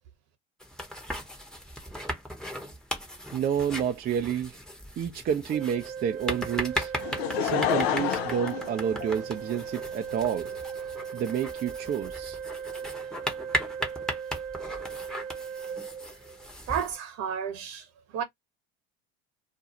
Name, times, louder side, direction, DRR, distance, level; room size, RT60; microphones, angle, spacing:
sound 1, 0.6-16.9, equal, ahead, 0.9 m, -37 dB
voice 1, 3.3-4.6 5.0-6.9 7.4-10.5 11.1-12.4, right 8 dB, 30° right, 0.4 m, -29 dB
Organ, 5.5-16.6, right 7 dB, 75° right, 0.7 m, -38 dB
Laughter / Crowd, 7.0-9.6 10.3-10.4, left 9 dB, 75° left, 0.5 m, -29 dB
voice 2, 16.7-17.8 18.1-18.2, right 8 dB, 55° right, 1.1 m, -31 dB
2.5 x 2.2 x 2.8 m
hypercardioid pair, 75°, 31 cm